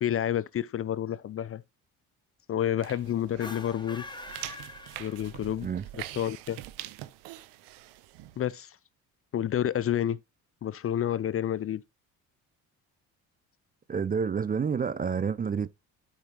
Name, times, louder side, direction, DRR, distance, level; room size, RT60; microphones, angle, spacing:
voice 1, 0.0-1.6 2.5-4.1 5.0-5.7 6.2-6.6 8.4-8.8 9.3-10.2 10.6-11.8, left 10 dB, 35° left, 0.5 m, -29 dB
sound 1, 2.8-8.5, right 15 dB, 75° right, 0.8 m, -44 dB
sound 2, 3.3-5.6, left 2 dB, 10° left, 1.1 m, -43 dB
voice 2, 13.9-15.7, right 6 dB, 25° right, 0.4 m, -29 dB
12.0 x 4.9 x 2.9 m
hypercardioid pair, 60°, 40 cm